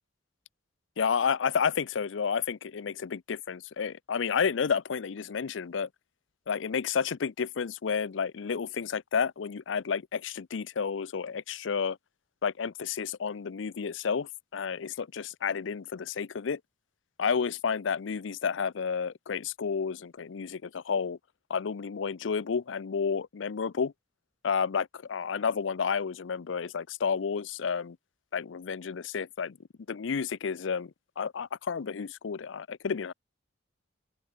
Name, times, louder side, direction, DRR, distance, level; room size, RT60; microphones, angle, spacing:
voice 1, 1.0-5.9 6.5-12.0 12.4-16.6 17.2-21.2 21.5-23.9 24.4-28.0 28.3-29.6 29.9-33.1, left 6 dB, 85° left, 0.5 m, -31 dB
open air
head